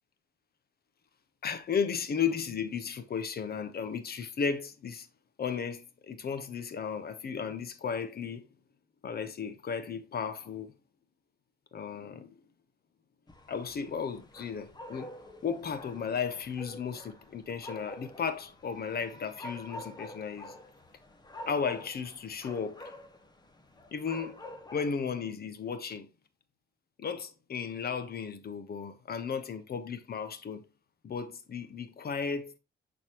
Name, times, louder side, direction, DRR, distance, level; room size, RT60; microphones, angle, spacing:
voice 1, 1.4-5.1 5.4-8.5 9.0-10.7 11.7-12.4 13.5-15.1 15.4-20.5 21.5-22.9 23.9-24.4 24.7-26.1 27.0-30.6 31.0-32.6, left 6 dB, 50° left, 1.3 m, -34 dB
sound 1, 13.3-24.9, left 1 dB, 20° left, 1.5 m, -48 dB
11.0 x 4.3 x 3.1 m
cardioid pair, 90°, 20 cm